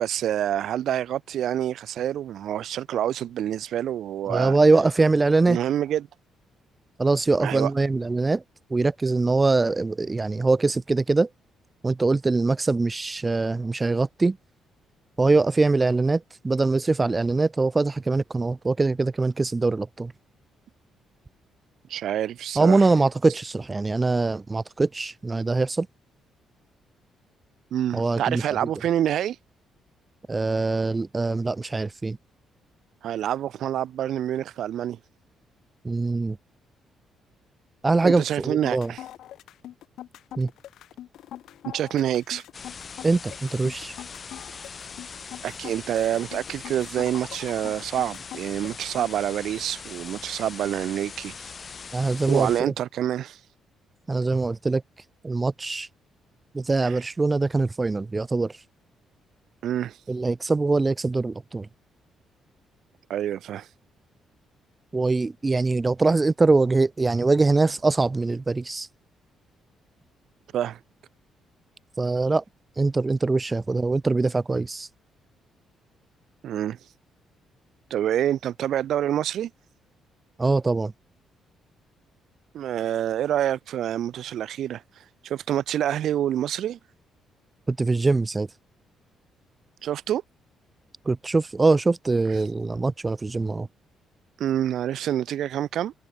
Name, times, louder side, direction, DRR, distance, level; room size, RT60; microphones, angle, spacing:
voice 1, 0.0-4.6 5.5-6.1 7.4-7.7 21.9-22.9 27.7-29.4 33.0-35.0 38.0-39.0 41.6-42.4 45.4-51.3 52.3-53.4 56.8-56.9 59.6-60.0 63.1-63.7 70.5-70.8 76.4-76.8 77.9-79.5 82.5-84.8 85.2-86.8 89.8-90.2 94.4-95.9, right 11 dB, 65° right, 0.8 m, -27 dB
voice 2, 4.3-5.6 7.0-8.4 8.7-11.3 11.8-14.4 15.2-20.1 22.6-25.9 27.9-28.4 30.3-32.2 35.8-36.4 37.8-38.9 40.4-40.5 43.0-43.9 51.9-52.7 54.1-54.8 55.2-55.9 56.5-58.5 60.1-61.7 64.9-68.9 72.0-72.4 72.8-74.9 80.4-80.9 87.7-88.5 91.1-93.7, right 3 dB, 20° right, 0.4 m, -23 dB
sound 1, 38.5-49.1, left 12 dB, 75° left, 4.0 m, -42 dB
sound 2, 42.5-52.6, left 5 dB, 30° left, 0.6 m, -41 dB
cardioid pair, 140°, 0 cm